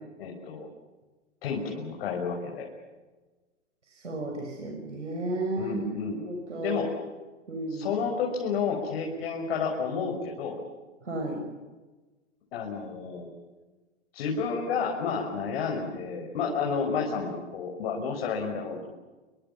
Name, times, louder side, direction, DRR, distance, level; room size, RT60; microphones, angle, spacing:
voice 1, 0.2-0.7 1.4-2.7 5.5-6.2 6.6-6.9 7.7-10.6 12.5-13.3 14.1-18.9, left 5 dB, 55° left, 0 dB, 6.2 m, -31 dB
voice 2, 3.9-5.9 6.2-6.8 7.5-7.9 11.0-11.4, right 2 dB, 90° right, 1 dB, 6.8 m, -33 dB
29.5 x 24.0 x 7.4 m, 1.2 s
hypercardioid pair, 120°, 35 cm